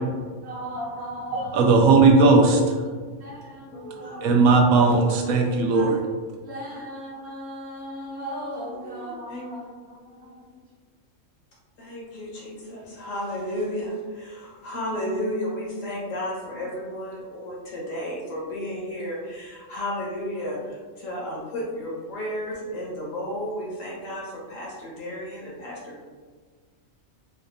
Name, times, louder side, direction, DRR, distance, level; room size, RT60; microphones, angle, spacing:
voice 1, 0.4-1.6 3.2-4.3 6.4-10.3, equal, 55° right, -4 dB, 1.1 m, -37 dB
voice 2, 1.5-2.6 4.2-6.0, right 3 dB, 85° right, 1 dB, 1.0 m, -17 dB
voice 3, 3.7-4.3 5.7-5.9 6.7-6.8 8.7-9.4 11.8-26.1, equal, 75° left, -5 dB, 1.4 m, -33 dB
4.1 x 2.5 x 2.6 m, 1.5 s
omnidirectional pair, 1.4 m